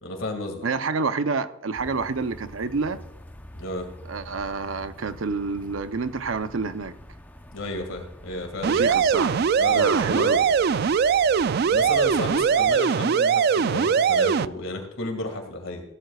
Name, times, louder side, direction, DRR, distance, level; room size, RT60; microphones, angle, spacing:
voice 1, 0.0-0.7 3.6-3.9 7.5-8.9 9.6-10.4 11.7-15.8, left 2 dB, 75° left, 4 dB, 2.1 m, -32 dB
voice 2, 0.6-3.0 4.1-6.9 8.7-9.4 9.7-10.5, right 4 dB, 80° right, 11 dB, 0.7 m, -28 dB
sound 1, 1.7-12.8, equal, 10° left, 0.8 m, -45 dB
sound 2, 8.6-14.5, right 6 dB, 50° right, 0.3 m, -21 dB
16.0 x 13.0 x 2.4 m, 0.90 s
head